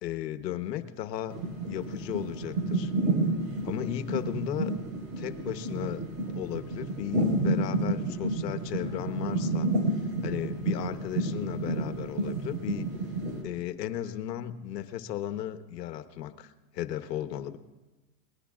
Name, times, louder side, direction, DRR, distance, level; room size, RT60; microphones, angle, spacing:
voice 1, 0.0-1.4 1.7-2.9 3.6-4.7 5.2-9.7 10.2-12.9 13.4-17.6, left 11 dB, 90° left, 10 dB, 1.2 m, -35 dB
sound 1, 1.3-13.4, right 2 dB, 50° right, 5.0 m, -30 dB
29.0 x 20.0 x 2.5 m, 1.2 s
supercardioid pair, 140°, 48 cm